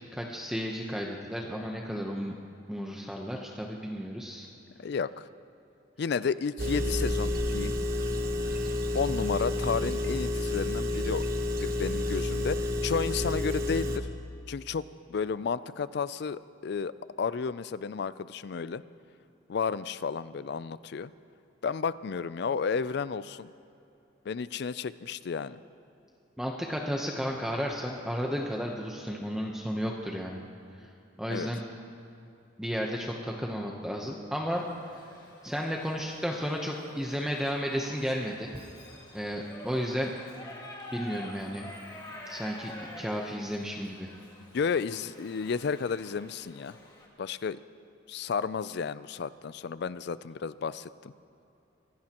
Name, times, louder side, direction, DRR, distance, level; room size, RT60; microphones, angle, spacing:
voice 1, 0.1-2.4 2.7-4.5 26.4-30.4 30.8-30.9 31.2-31.6 32.6-34.6 35.4-38.5 39.1-40.1 40.9-41.6 42.3-44.1, equal, 5° right, -1 dB, 0.9 m, -33 dB
voice 2, 4.8-5.3 6.0-7.8 8.9-11.2 11.5-14.1 14.5-16.9 17.2-18.8 19.5-21.1 21.6-23.5 24.3-25.6 31.3-31.5 44.5-46.8 47.2-47.6 48.1-51.1, left 5 dB, 55° left, 16 dB, 0.4 m, -32 dB
Engine, 6.6-14.0, left 1 dB, 50° right, 1.2 m, -30 dB
Shout / Livestock farm animals working animals, 34.5-47.1, left 1 dB, 20° left, 1.9 m, -48 dB
25.0 x 17.0 x 3.0 m, 2.8 s
head